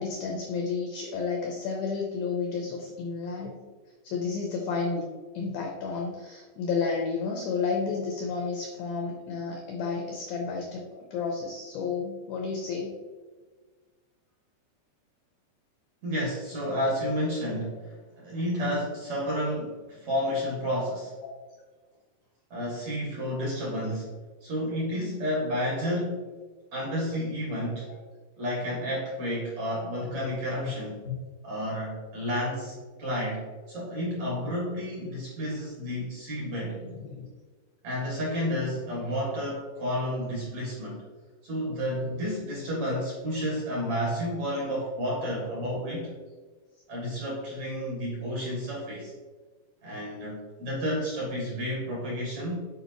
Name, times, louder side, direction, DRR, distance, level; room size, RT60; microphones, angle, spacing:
voice 1, 0.0-3.6 4.0-5.1 5.3-10.8 11.1-12.9 30.0-30.1 30.6-30.7 31.1-31.2 36.8-37.3 42.0-42.2, left 5 dB, 85° left, 1 dB, 2.1 m, -31 dB
voice 2, 16.0-21.1 22.5-24.1 24.4-26.2 26.7-27.9 28.4-31.0 31.4-36.8 37.8-41.0 41.4-46.1 46.9-49.1 49.8-52.7, equal, 55° right, -5 dB, 2.1 m, -31 dB
9.7 x 4.7 x 3.0 m, 1.4 s
omnidirectional pair, 5.2 m